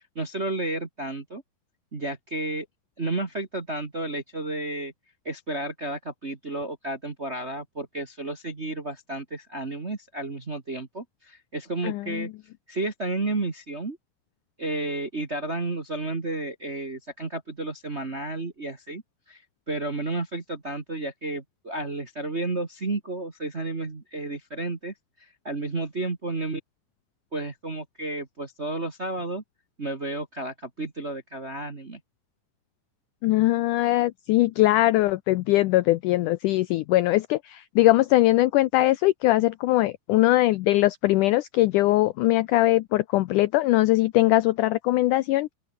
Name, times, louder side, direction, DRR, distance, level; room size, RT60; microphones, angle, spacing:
voice 1, 0.0-1.4 1.9-2.6 3.0-4.9 5.2-12.3 12.7-14.0 14.6-19.0 19.3-19.4 19.7-24.9 25.2-26.6 27.3-29.4 29.8-32.0, right 2 dB, 35° right, 1.1 m, -32 dB
voice 2, 11.8-12.3 33.2-45.5, left 17 dB, 80° left, 1.8 m, -21 dB
open air
omnidirectional pair, 4.3 m